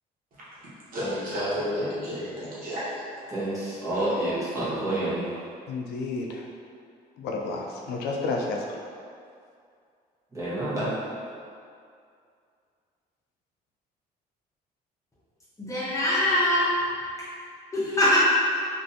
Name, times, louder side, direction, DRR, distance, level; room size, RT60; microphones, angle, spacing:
voice 1, 0.9-3.0, equal, 55° right, -9 dB, 1.2 m, -31 dB
voice 2, 3.3-5.2 10.3-10.9, right 1 dB, 20° right, -10 dB, 1.1 m, -28 dB
voice 3, 5.7-6.4 7.2-8.8, left 3 dB, 80° left, 0 dB, 0.4 m, -31 dB
voice 4, 15.6-16.8 17.2-17.3 17.7-18.2, left 1 dB, 20° left, -8 dB, 0.9 m, -23 dB
3.2 x 2.6 x 2.7 m, 2.3 s
cardioid pair, 110°, 17 cm